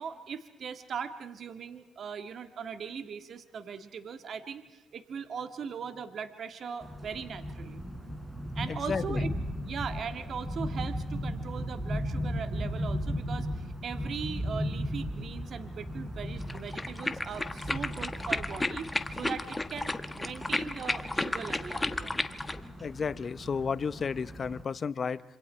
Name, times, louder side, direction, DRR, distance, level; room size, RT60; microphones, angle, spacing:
voice 1, 0.0-7.8 8.5-9.3 9.6-22.3, right 6 dB, 60° right, 9 dB, 1.8 m, -40 dB
sound 1, 6.8-24.6, equal, 10° right, 4.4 m, -37 dB
voice 2, 8.7-9.3 22.8-25.2, left 5 dB, 45° left, 16 dB, 0.9 m, -32 dB
sound 2, 16.4-22.6, left 2 dB, 15° left, 1.3 m, -33 dB
27.0 x 26.0 x 4.5 m, 1.1 s
cardioid pair, 75°, 0 cm